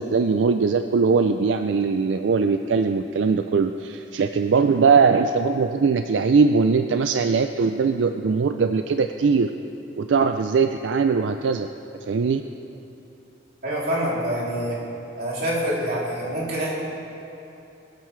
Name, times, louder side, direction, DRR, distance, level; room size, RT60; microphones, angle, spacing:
voice 1, 0.0-9.5 10.0-11.7 12.1-12.4, right 5 dB, 90° right, 7 dB, 0.4 m, -20 dB
voice 2, 13.6-14.8 15.2-16.7, equal, 55° right, -6 dB, 3.1 m, -26 dB
22.0 x 9.2 x 3.2 m, 2.8 s
head